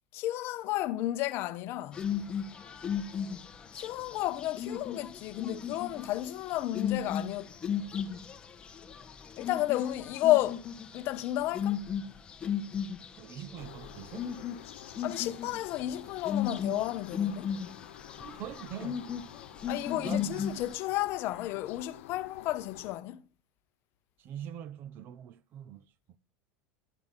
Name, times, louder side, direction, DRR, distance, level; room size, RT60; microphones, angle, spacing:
voice 1, 0.1-2.0 3.7-7.5 9.4-10.6 10.9-11.8 15.0-17.5 19.7-23.2, left 15 dB, 35° left, 0.8 m, -32 dB
sound 1, 1.9-20.8, left 7 dB, 15° left, 1.1 m, -36 dB
voice 2, 13.2-14.3 18.2-19.1 19.9-20.6 24.2-25.8, right 10 dB, 30° right, 0.6 m, -43 dB
sound 2, 13.6-23.0, left 14 dB, 90° left, 1.0 m, -50 dB
11.5 x 11.0 x 5.2 m
supercardioid pair, 180°, 7 cm